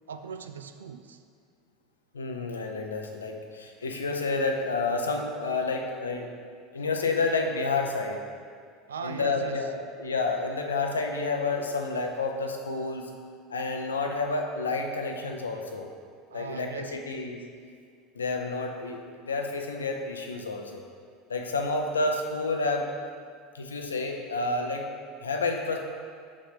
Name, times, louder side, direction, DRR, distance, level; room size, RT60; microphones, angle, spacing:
voice 1, 0.1-1.2 8.9-9.7 16.3-17.0, right 6 dB, 85° right, 8 dB, 0.3 m, -39 dB
voice 2, 2.1-6.3 6.7-8.2 9.0-13.1 13.5-15.9 16.3-17.4 18.2-20.8 21.3-22.9 23.5-24.9 25.2-25.8, left 3 dB, 90° left, 3 dB, 0.5 m, -30 dB
5.9 x 5.2 x 3.5 m, 2.1 s
hypercardioid pair, 75°, 0 cm